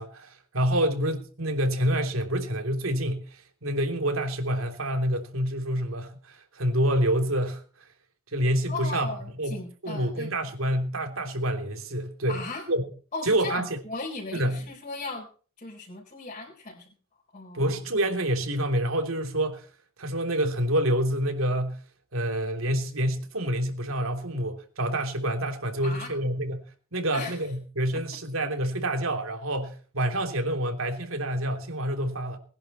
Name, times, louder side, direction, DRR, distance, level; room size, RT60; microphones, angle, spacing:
voice 1, 0.0-7.6 8.3-9.1 9.4-12.4 12.7-12.8 13.3-13.8 14.3-14.6 17.5-19.6 20.0-21.8 22.1-26.6 26.9-32.4, right 1 dB, 85° right, 3.2 m, -27 dB
voice 2, 8.7-10.3 12.3-12.7 13.1-15.3 15.6-16.9 17.3-17.7 25.8-26.1 27.1-27.4 27.9-28.0, left 3 dB, 40° left, 4.5 m, -37 dB
20.5 x 11.0 x 4.3 m
head